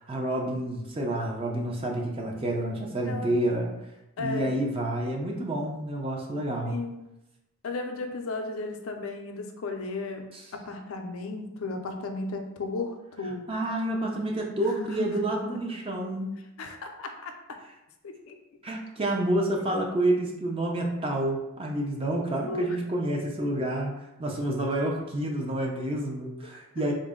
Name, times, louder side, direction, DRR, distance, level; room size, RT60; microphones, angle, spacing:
voice 1, 0.0-3.7 4.2-6.8 10.3-10.5 13.5-16.3 17.6-17.7 18.6-23.9 24.2-26.9, right 1 dB, 25° right, 0 dB, 0.5 m, -29 dB
voice 2, 4.2-4.6 6.6-7.0 7.6-10.3 10.5-13.4 14.8-15.4 16.6-17.3 18.0-18.3 22.5-22.7, left 3 dB, 75° left, 4 dB, 0.5 m, -34 dB
3.8 x 2.1 x 3.6 m, 0.92 s
head